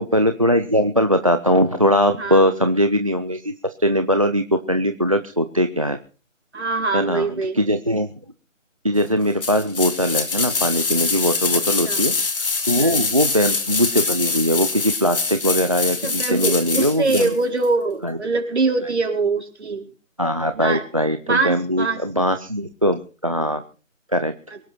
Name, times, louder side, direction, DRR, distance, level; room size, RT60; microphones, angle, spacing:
voice 1, 0.0-6.0 6.9-8.1 8.8-17.3 18.0-18.2 20.2-23.6 24.1-24.3, equal, 25° right, 10 dB, 0.6 m, -21 dB
voice 2, 2.2-2.5 6.5-7.6 11.8-12.0 12.7-13.1 16.0-19.9 20.5-20.8 21.2-22.0, right 3 dB, 55° right, 3 dB, 4.7 m, -23 dB
sound 1, 9.4-17.3 17.6-17.7, left 4 dB, 45° left, 2.4 m, -24 dB
23.5 x 12.0 x 4.4 m, 0.37 s
figure-of-eight pair, 170°, 39 cm